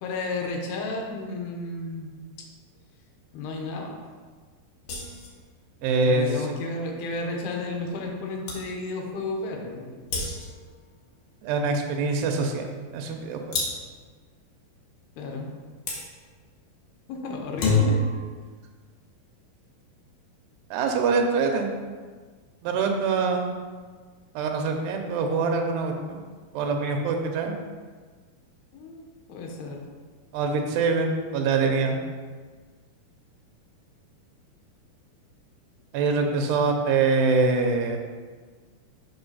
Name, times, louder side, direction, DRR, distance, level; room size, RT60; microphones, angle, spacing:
voice 1, 0.0-2.1 3.3-4.0 5.8-10.1 15.2-15.5 17.1-18.3 28.7-29.0 29.3-29.8 36.3-36.7, left 2 dB, 80° left, 1 dB, 2.9 m, -33 dB
sound 1, 4.9-5.4 8.1-8.2 8.5-8.7 10.1-10.7 13.5-14.0 15.9-16.1 17.4-18.2, left 3 dB, 65° left, 2.3 m, -26 dB
voice 2, 5.8-6.3 11.4-12.7 12.9-13.6 20.7-21.7 22.6-23.5 24.4-26.2 26.5-27.5 30.3-32.0 35.9-38.0, right 4 dB, 90° right, 3 dB, 2.8 m, -24 dB
7.7 x 4.0 x 5.5 m, 1.5 s
omnidirectional pair, 4.8 m